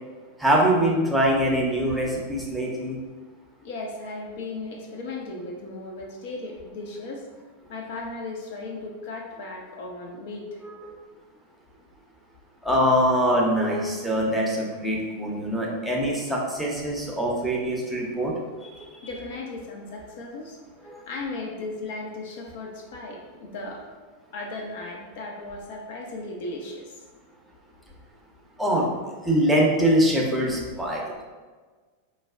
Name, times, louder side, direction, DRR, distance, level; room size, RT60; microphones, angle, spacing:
voice 1, 0.4-3.0 12.6-18.3 18.6-19.0 20.9-21.0 28.6-28.9 29.2-31.2, equal, 5° right, -4 dB, 0.6 m, -23 dB
voice 2, 3.6-7.2 7.7-10.6 19.0-23.8 24.3-27.0, left 2 dB, 50° left, 1 dB, 0.4 m, -36 dB
4.5 x 2.1 x 2.3 m, 1.4 s
figure-of-eight pair, 90°, 0 cm